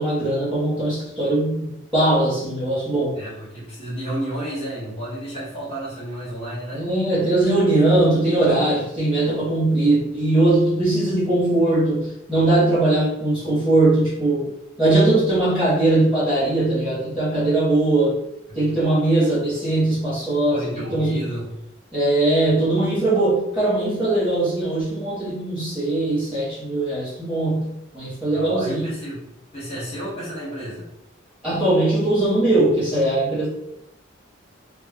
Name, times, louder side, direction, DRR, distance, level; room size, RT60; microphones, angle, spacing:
voice 1, 0.0-3.2 6.7-18.2 18.5-21.3 21.9-28.9 31.4-33.5, right 2 dB, 5° right, -9 dB, 0.8 m, -20 dB
voice 2, 3.2-6.9 18.7-18.8 20.5-21.5 28.3-29.2 29.5-30.9, right 1 dB, 30° left, -10 dB, 0.7 m, -31 dB
2.2 x 2.0 x 3.3 m, 0.82 s
head